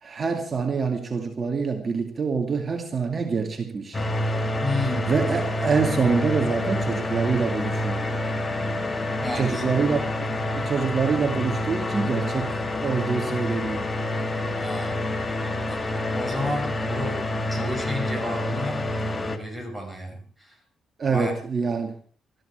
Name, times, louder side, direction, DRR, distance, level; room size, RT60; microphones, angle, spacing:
voice 1, 0.0-4.0 5.1-8.1 9.3-13.9 21.0-22.0, right 5 dB, 40° right, 2.2 m, -26 dB
sound 1, 3.9-19.4, left 1 dB, 25° left, 2.3 m, -28 dB
voice 2, 4.6-5.2 9.2-9.7 14.6-15.0 15.6-17.2 17.5-20.6 21.0-21.3, left 1 dB, 10° left, 6.6 m, -32 dB
20.0 x 14.0 x 4.7 m
cardioid pair, 90°, 0 cm